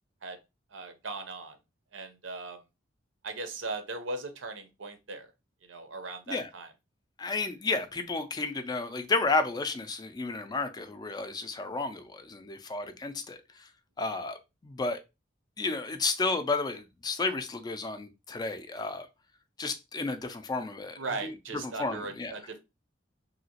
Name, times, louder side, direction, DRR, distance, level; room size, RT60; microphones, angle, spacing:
voice 1, 0.7-1.6 1.9-2.6 3.2-5.3 5.7-6.7 21.0-22.6, right 3 dB, 85° right, 0.7 m, -38 dB
voice 2, 7.2-13.4 14.0-14.4 14.6-15.0 15.6-19.1 19.6-21.3 21.8-22.3, left 3 dB, 20° left, 0.3 m, -32 dB
2.9 x 2.8 x 2.8 m
head